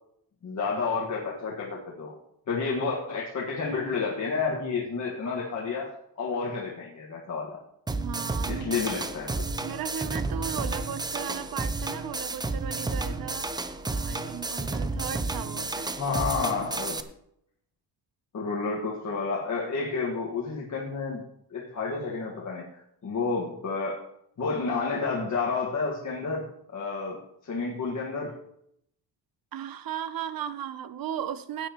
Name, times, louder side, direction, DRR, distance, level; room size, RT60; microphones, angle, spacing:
voice 1, 0.4-2.1 2.5-7.6 8.5-9.4 16.0-17.0 18.3-21.2 21.5-24.0 24.4-28.3, left 4 dB, 40° left, -3 dB, 1.7 m, -30 dB
sound 1, 7.9-17.0, right 3 dB, 10° right, 0.4 m, -31 dB
voice 2, 7.9-8.7 9.6-13.5 13.8-16.0 29.5-31.7, right 9 dB, 55° right, 14 dB, 0.7 m, -36 dB
17.0 x 9.4 x 3.0 m, 0.75 s
wide cardioid pair, 165°, 43 cm